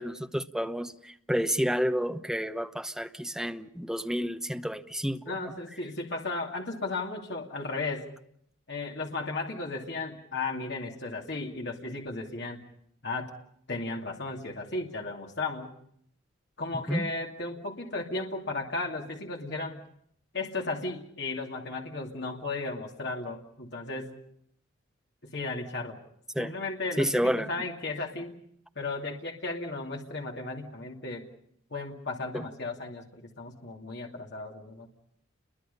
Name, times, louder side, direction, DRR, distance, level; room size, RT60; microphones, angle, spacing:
voice 1, 0.0-5.2 16.7-17.1 26.3-26.5 27.0-27.5 32.3-32.4, equal, 5° right, 7 dB, 0.9 m, -30 dB
voice 2, 5.3-8.1 8.7-12.6 13.0-13.3 13.7-15.7 16.6-19.8 20.3-24.1 25.3-26.0 26.4-28.4 28.8-31.2 31.7-34.9, left 3 dB, 55° left, 1 dB, 2.7 m, -35 dB
29.5 x 22.5 x 5.5 m, 0.70 s
head